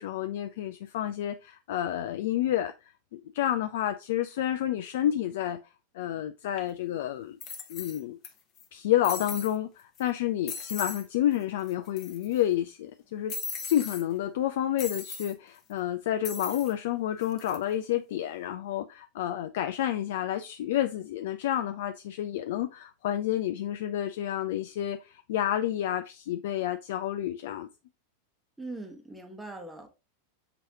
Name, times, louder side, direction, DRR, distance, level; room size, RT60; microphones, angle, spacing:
voice 1, 0.0-5.6 5.9-7.4 7.7-8.2 8.7-13.3 13.7-27.7, left 12 dB, 55° left, 0.3 m, -30 dB
sound 1, 6.6-6.7 7.4-8.3 8.6-8.7 9.0-9.6 10.0-10.1 10.5-11.1 11.3-11.4 11.7-12.4 13.3-14.0 14.8-15.3 16.2-16.7 17.2-17.6, left 6 dB, 35° left, 0.8 m, -38 dB
voice 2, 28.6-29.9, right 2 dB, 5° right, 1.0 m, -41 dB
6.0 x 3.0 x 2.8 m
figure-of-eight pair, 90°, 0 cm